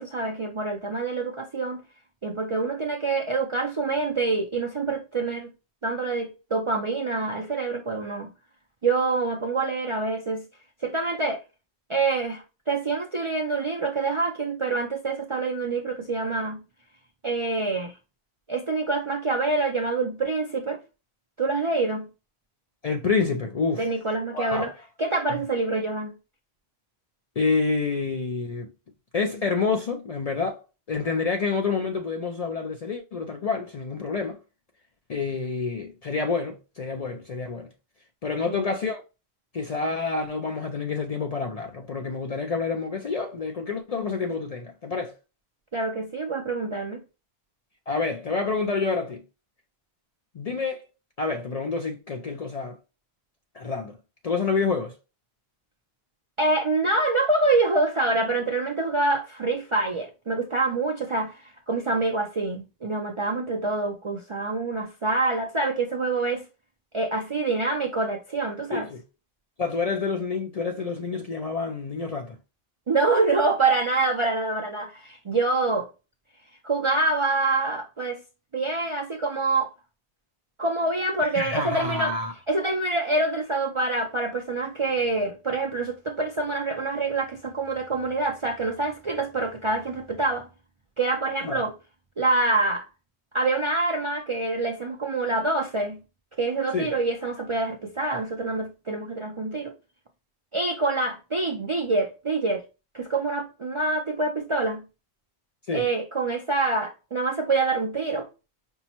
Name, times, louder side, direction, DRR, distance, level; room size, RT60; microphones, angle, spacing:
voice 1, 0.0-1.8 2.2-5.5 5.8-8.3 8.8-10.4 10.8-11.4 11.9-16.6 17.2-18.0 18.5-20.8 21.4-22.1 23.8-24.7 25.0-26.1 38.5-38.7 45.7-47.0 56.4-66.4 66.9-68.9 72.9-75.9 76.6-78.2 78.5-79.7 80.6-82.1 82.5-90.5 91.0-91.7 92.2-92.9 93.3-96.0 96.4-99.7 100.5-102.6 102.9-104.8 105.7-108.3, right 3 dB, 45° right, 0.4 m, -26 dB
voice 2, 22.8-23.9 24.3-24.7 27.4-28.7 29.1-34.4 35.1-37.7 38.2-39.0 39.5-45.1 47.9-49.2 50.3-50.9 51.2-52.8 53.5-54.0 54.2-55.0 68.7-69.0 69.6-72.4 81.3-82.3 91.4-91.6 96.7-96.9 105.7-105.9, left 4 dB, 50° left, 0.4 m, -28 dB
5.3 x 2.1 x 2.9 m
omnidirectional pair, 1.1 m